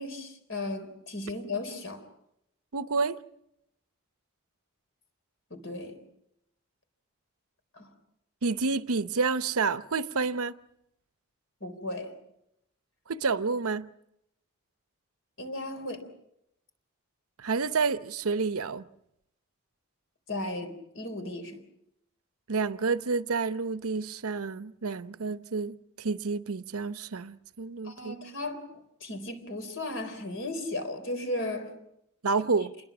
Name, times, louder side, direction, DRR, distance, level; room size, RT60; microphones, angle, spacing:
voice 1, 0.0-2.1 5.5-6.0 7.7-8.0 11.6-12.2 15.4-16.1 20.3-21.6 27.8-31.8, left 2 dB, 55° left, 3.9 m, -36 dB
voice 2, 2.7-3.2 8.4-10.5 13.1-13.9 17.4-18.8 22.5-28.2 32.2-32.7, right 4 dB, 80° right, 0.8 m, -29 dB
28.0 x 21.0 x 6.1 m
head